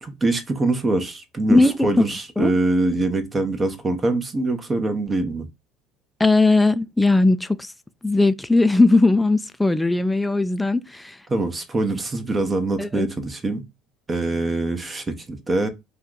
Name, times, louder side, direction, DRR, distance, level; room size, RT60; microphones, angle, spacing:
voice 1, 0.0-5.4 11.3-13.6 14.1-15.7, right 2 dB, 25° right, 0.8 m, -24 dB
voice 2, 1.5-2.0 2.4-2.5 6.2-7.7 8.0-11.2 12.8-13.1, left 2 dB, 10° left, 0.4 m, -18 dB
2.7 x 2.4 x 3.7 m
supercardioid pair, 85°, 0 cm